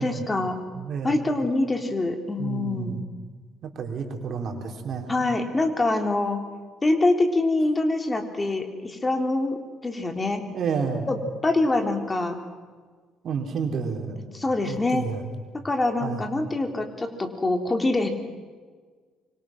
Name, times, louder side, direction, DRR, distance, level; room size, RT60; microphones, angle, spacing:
voice 1, 0.0-0.6 1.0-3.0 5.1-6.4 6.8-9.6 9.8-10.4 11.1-12.4 14.3-15.0 15.6-18.1, left 2 dB, 25° left, 5 dB, 3.5 m, -25 dB
voice 2, 0.7-1.2 2.4-3.0 3.6-5.3 10.5-11.1 13.2-14.3 14.7-15.3 16.0-16.2, right 6 dB, 55° right, 3 dB, 4.1 m, -30 dB
25.5 x 25.0 x 6.2 m, 1.5 s
hypercardioid pair, 55°, 0 cm